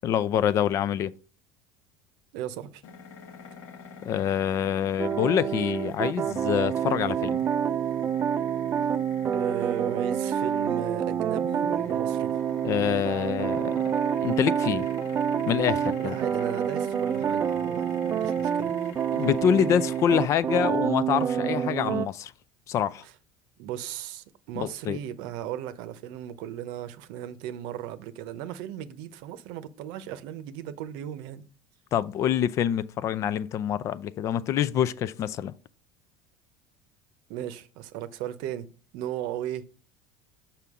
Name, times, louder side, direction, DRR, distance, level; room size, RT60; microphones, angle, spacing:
voice 1, 0.0-1.1 4.0-7.4 12.6-13.7 14.2-14.8 15.5-16.1 19.1-22.3 22.7-23.0 24.6-25.0 31.9-35.5, left 9 dB, 40° left, 0.4 m, -26 dB
voice 2, 2.3-2.8 9.3-12.3 16.0-18.7 23.0-23.1 23.6-31.4 37.3-39.7, right 11 dB, 70° right, 0.7 m, -36 dB
sound 1, 2.8-20.4, left 4 dB, 70° left, 1.3 m, -46 dB
sound 2, 5.0-22.1, right 8 dB, 30° right, 0.3 m, -27 dB
6.8 x 5.8 x 3.6 m
cardioid pair, 135°, 8 cm